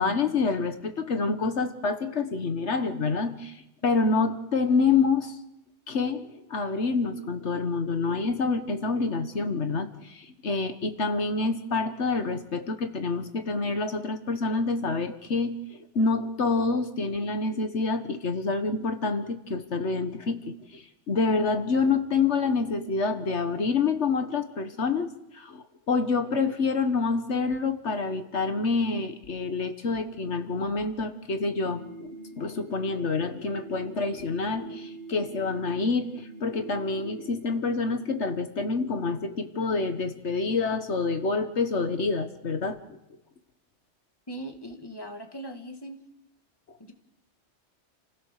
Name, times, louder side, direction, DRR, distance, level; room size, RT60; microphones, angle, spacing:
voice 1, 0.0-5.3 5.9-32.1 32.4-42.8, left 4 dB, 80° left, 8 dB, 1.6 m, -27 dB
sound 1, 31.6-37.5, right 2 dB, 55° right, 1.9 m, -45 dB
voice 2, 44.3-46.0 46.8-46.9, right 1 dB, 20° left, 4 dB, 2.0 m, -39 dB
29.5 x 16.0 x 6.6 m, 0.87 s
omnidirectional pair, 1.2 m